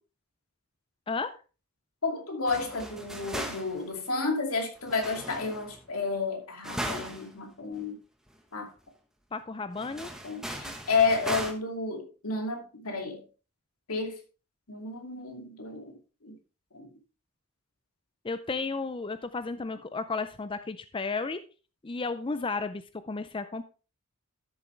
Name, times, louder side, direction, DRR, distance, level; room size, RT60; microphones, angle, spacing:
voice 1, 2.0-8.0 8.5-8.7 10.2-13.2 13.9-14.2 14.7-16.4 16.7-16.9, left 4 dB, 75° left, 2.5 m, -31 dB
sound 1, 2.5-4.0 4.9-5.9 6.6-7.3 7.7-7.8 8.3-8.4 9.8-11.5, right 1 dB, 5° right, 1.2 m, -37 dB
voice 2, 9.3-10.1 18.2-21.4 21.8-23.6, left 4 dB, 25° left, 0.4 m, -33 dB
12.5 x 6.9 x 3.3 m
head